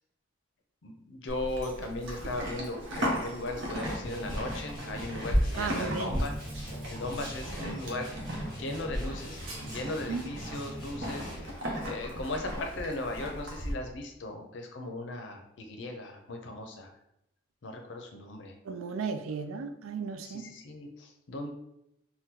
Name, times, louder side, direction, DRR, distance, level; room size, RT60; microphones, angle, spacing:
voice 1, 0.8-6.3 6.8-9.4 9.6-16.9 17.6-18.5 20.2-21.5, left 2 dB, 65° left, 4 dB, 0.5 m, -37 dB
Livestock farm animals working animals, 1.3-13.7, equal, 65° right, 0.8 m, -35 dB
sound 1, 3.8-11.6, equal, ahead, 1.3 m, -43 dB
voice 2, 5.6-6.1 10.1-10.2 18.6-20.4, right 5 dB, 90° right, 8 dB, 0.4 m, -34 dB
3.7 x 2.2 x 2.8 m, 0.80 s
head